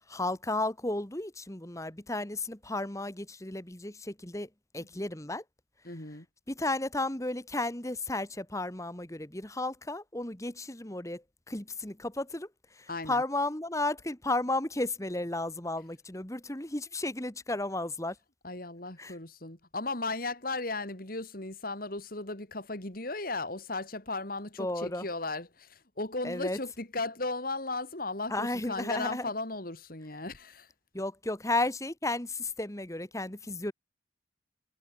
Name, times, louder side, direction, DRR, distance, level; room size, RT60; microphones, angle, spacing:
voice 1, 0.1-4.5 4.7-5.4 6.5-12.5 13.1-18.1 19.0-19.1 24.6-25.0 26.2-26.6 28.3-29.2 30.9-33.7, left 2 dB, 15° left, 1.7 m, -33 dB
voice 2, 5.8-6.2 12.9-13.2 18.4-30.7, left 2 dB, 50° left, 3.0 m, -36 dB
head